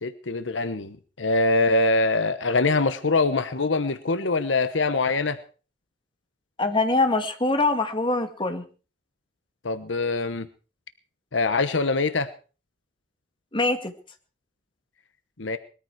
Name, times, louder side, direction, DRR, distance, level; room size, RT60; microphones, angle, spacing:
voice 1, 0.0-5.4 9.6-10.5 11.3-12.3 15.4-15.6, left 3 dB, 80° left, 11 dB, 1.1 m, -23 dB
voice 2, 6.6-8.6 13.5-13.9, left 2 dB, 25° left, 6 dB, 2.2 m, -23 dB
21.0 x 14.0 x 4.8 m, 0.38 s
head